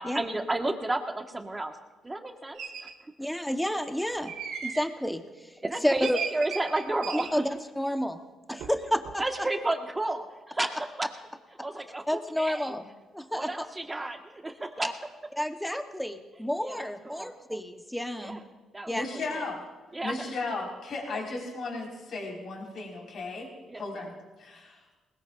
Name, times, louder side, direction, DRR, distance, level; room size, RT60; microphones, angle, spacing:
voice 1, 0.0-1.8 2.0-2.9 5.6-7.5 9.2-11.1 11.6-12.7 13.3-14.9 16.6-17.3 18.2-18.4 18.7-19.2 19.9-20.1 23.7-23.8, right 2 dB, 15° right, 4 dB, 1.6 m, -32 dB
sound 1, 2.5-2.9 4.3-4.9 6.0-7.4 8.6-8.8 9.0-9.5, right 6 dB, 80° right, 1.6 m, -37 dB
voice 2, 3.2-4.3 4.6-5.2 5.8-6.2 7.3-7.5 7.8-8.2 8.5-9.0 12.1-13.7 14.8-14.9 15.4-18.4 18.9-19.0, equal, 5° left, 6 dB, 1.1 m, -30 dB
voice 3, 18.9-19.6 20.0-24.9, left 3 dB, 60° left, -1 dB, 4.9 m, -36 dB
21.0 x 19.5 x 2.6 m, 1.2 s
cardioid pair, 90°, 0 cm